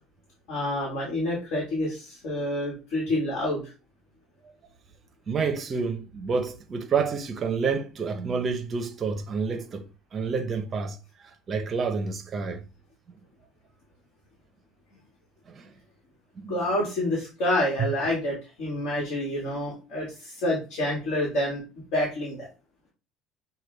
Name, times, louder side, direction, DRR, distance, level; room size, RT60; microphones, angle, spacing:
voice 1, 0.5-3.6 16.5-21.6 21.9-22.4, left 1 dB, 60° left, 1.6 m, -28 dB
voice 2, 5.3-9.8 10.1-12.6 15.5-15.7 16.4-16.7 17.8-17.9, right 5 dB, 25° right, 0.6 m, -29 dB
6.1 x 2.3 x 3.3 m
cardioid pair, 165°, 0 cm